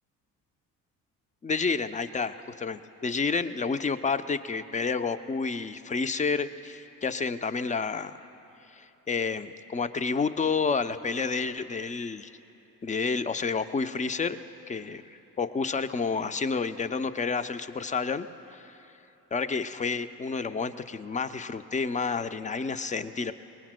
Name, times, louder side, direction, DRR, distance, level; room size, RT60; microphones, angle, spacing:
voice 1, 1.4-8.3 8.7-12.3 12.8-14.4 14.7-15.0 15.4-18.3 18.5-18.7 19.3-23.3, left 4 dB, 15° left, 12 dB, 0.6 m, -30 dB
28.5 x 19.0 x 2.2 m, 2.9 s
figure-of-eight pair, 50°, 47 cm